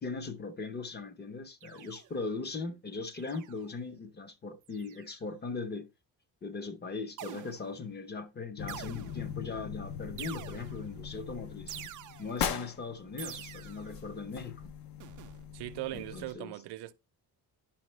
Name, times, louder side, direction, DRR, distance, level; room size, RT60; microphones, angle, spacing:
voice 1, 0.0-5.9 6.4-11.8 12.2-14.7 15.9-16.5, left 4 dB, 25° left, 0.6 m, -39 dB
sound 1, 1.6-2.3 3.1-3.7 4.7-5.2 7.2-7.9 8.7-9.4 10.2-11.0 11.7-12.5 13.2-14.0 15.0-15.4, right 12 dB, 50° right, 0.5 m, -47 dB
sound 2, 8.6-16.3, left 8 dB, 60° left, 0.7 m, -41 dB
voice 2, 15.5-16.9, right 16 dB, 90° right, 0.7 m, -39 dB
9.8 x 5.7 x 3.1 m
cardioid pair, 155°, 40 cm